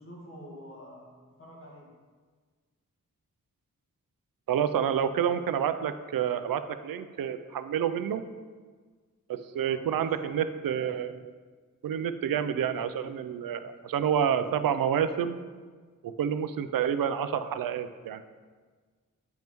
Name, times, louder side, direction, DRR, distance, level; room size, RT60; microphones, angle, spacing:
voice 1, 0.0-1.9 9.6-10.1, equal, 40° left, -4 dB, 1.7 m, -47 dB
voice 2, 4.5-8.2 9.3-11.3 11.8-15.4 16.0-18.2, right 8 dB, 90° right, 11 dB, 0.5 m, -29 dB
9.1 x 5.3 x 3.0 m, 1.5 s
wide cardioid pair, 160°, 33 cm